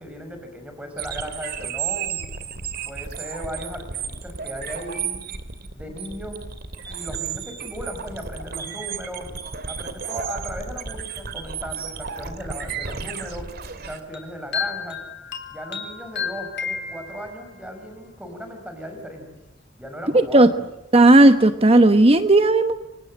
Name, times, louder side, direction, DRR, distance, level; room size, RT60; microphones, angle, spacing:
voice 1, 0.0-2.2 2.8-5.2 5.8-6.4 6.9-9.3 9.7-13.5 13.8-15.0 15.5-19.3 19.8-20.5, equal, 5° right, 6 dB, 5.6 m, -36 dB
sound 1, 1.0-14.0, right 6 dB, 55° right, 2.5 m, -33 dB
sound 2, 14.1-17.6, left 6 dB, 60° left, 3.6 m, -32 dB
voice 2, 20.1-20.5 20.9-22.7, right 2 dB, 30° right, 9 dB, 1.1 m, -14 dB
29.0 x 26.0 x 7.8 m, 0.93 s
head